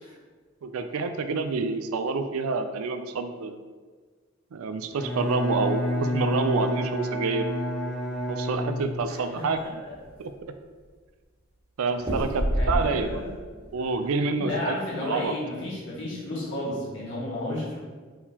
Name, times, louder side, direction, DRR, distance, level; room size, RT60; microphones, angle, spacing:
voice 1, 0.6-3.6 4.5-7.5 8.3-9.8 10.2-10.3 11.8-13.3 13.7-15.3, right 4 dB, 90° right, 8 dB, 0.4 m, -28 dB
Bowed string instrument, 4.9-9.2, left 1 dB, ahead, 0.4 m, -29 dB
sound 1, 8.1-9.0 9.5-9.6 9.9-10.5 12.0-13.2 13.6-14.0, equal, 25° right, 1.5 m, -28 dB
voice 2, 9.1-9.4 9.8-9.9 12.5-13.4 14.4-17.8, left 1 dB, 60° left, -7 dB, 1.5 m, -33 dB
4.5 x 3.7 x 2.9 m, 1.5 s
head